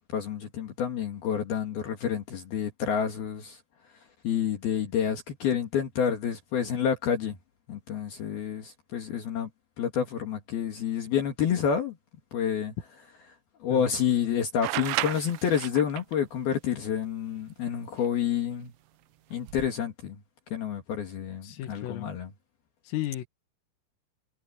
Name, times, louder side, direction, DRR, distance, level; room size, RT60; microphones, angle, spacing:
voice 1, 0.1-3.6 4.2-7.4 7.7-9.5 9.8-12.0 12.3-12.7 13.6-18.7 19.3-20.2 20.5-22.3, left 8 dB, 55° left, 3.6 m, -29 dB
sound 1, 14.6-16.1 18.1-18.2 19.3-19.7, right 22 dB, 85° right, 2.8 m, -33 dB
voice 2, 21.4-22.1 22.9-23.3, left 14 dB, 85° left, 4.5 m, -34 dB
omnidirectional pair, 5.8 m